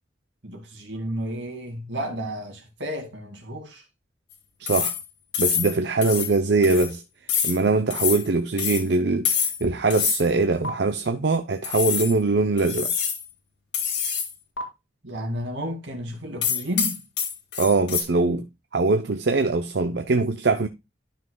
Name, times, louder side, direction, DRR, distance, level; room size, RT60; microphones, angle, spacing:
voice 1, 0.4-3.8 15.0-17.0, equal, 85° right, 2.3 m, -32 dB
voice 2, 4.6-4.9 5.4-7.0 7.4-12.9 17.6-18.5 18.7-20.7, right 3 dB, 65° right, 0.6 m, -22 dB
sound 1, 4.7-5.0 5.3-5.7 6.0-6.3 6.6-6.9 7.3-7.6 7.9-8.2 8.6-8.8 9.3-9.6 9.9-10.2 10.6-10.7 11.6-12.1 12.6-13.2 13.7-14.3 14.6-14.7 16.4-18.0, left 7 dB, 85° left, 2.0 m, -26 dB
12.0 x 5.8 x 2.3 m
head